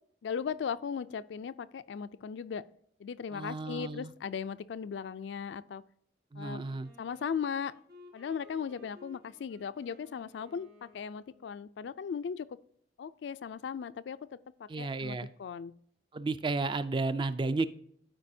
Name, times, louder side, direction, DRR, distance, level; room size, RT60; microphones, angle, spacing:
voice 1, 0.2-2.6 3.0-5.8 6.4-6.6 7.0-7.7 8.1-12.5 13.0-14.2 14.6-15.7, left 6 dB, 70° left, 15 dB, 0.3 m, -37 dB
voice 2, 3.3-4.1 6.3-6.9 14.7-15.3 16.1-17.7, right 3 dB, 25° right, 13 dB, 0.3 m, -33 dB
Wind instrument woodwind instrument, 6.5-11.7, left 2 dB, 50° right, 1.7 m, -58 dB
12.5 x 4.6 x 2.7 m, 0.66 s
head